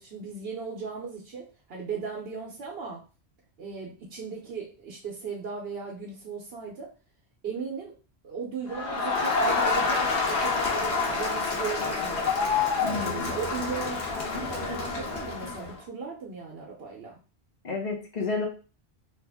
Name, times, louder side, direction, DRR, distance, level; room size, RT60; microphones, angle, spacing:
voice 1, 0.0-3.0 3.6-6.9 7.4-7.9 8.2-12.2 13.0-17.2, right 5 dB, 70° right, -2 dB, 0.9 m, -37 dB
Crowd, 8.7-15.7, left 4 dB, 90° left, 1.1 m, -27 dB
voice 2, 12.8-13.4 17.6-18.5, left 4 dB, 45° left, 1 dB, 0.7 m, -31 dB
2.9 x 2.5 x 3.4 m, 0.35 s
omnidirectional pair, 1.1 m